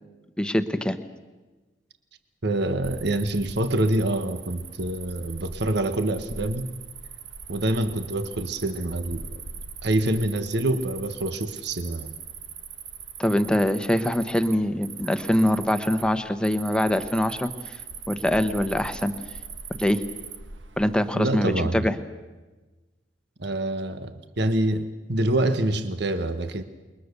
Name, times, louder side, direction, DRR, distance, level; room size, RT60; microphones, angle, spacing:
voice 1, 0.4-1.0 13.2-17.8 18.1-19.1 19.8-20.0 20.8-21.9, left 1 dB, 5° left, 9 dB, 1.1 m, -23 dB
voice 2, 2.4-6.7 7.5-9.3 9.8-12.2 21.1-22.0 23.4-26.6, right 1 dB, 65° right, 9 dB, 1.3 m, -26 dB
Cricket, 2.8-21.7, right 6 dB, 85° right, 1.4 m, -41 dB
28.5 x 22.0 x 6.8 m, 1.2 s
head